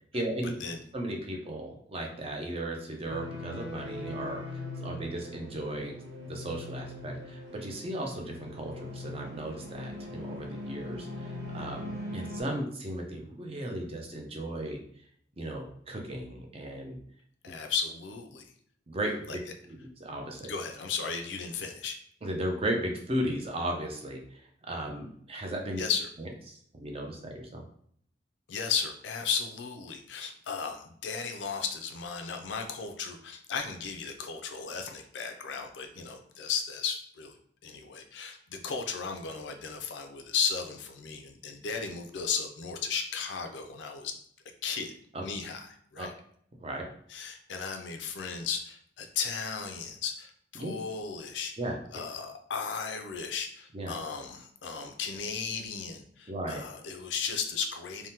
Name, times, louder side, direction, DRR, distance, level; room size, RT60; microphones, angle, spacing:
voice 1, 0.1-0.5 0.9-6.0 6.3-14.8 15.4-17.0 18.9-19.3 19.7-20.5 22.2-24.4 24.7-25.8 26.5-27.6 45.1-45.2 46.0-46.1 46.6-46.9 50.6-50.7 51.6-51.8 53.7-53.9 56.3-56.6, right 1 dB, 30° right, 1 dB, 0.5 m, -36 dB
sound 1, 3.1-12.4, left 1 dB, 85° right, 1.3 m, -41 dB
voice 2, 17.4-18.5 19.3-19.4 20.4-22.0 25.8-26.1 28.5-44.1 44.6-44.9 45.2-46.1 47.1-51.5 51.9-58.1, left 6 dB, 65° left, 5 dB, 0.4 m, -35 dB
3.4 x 2.1 x 2.8 m, 0.64 s
head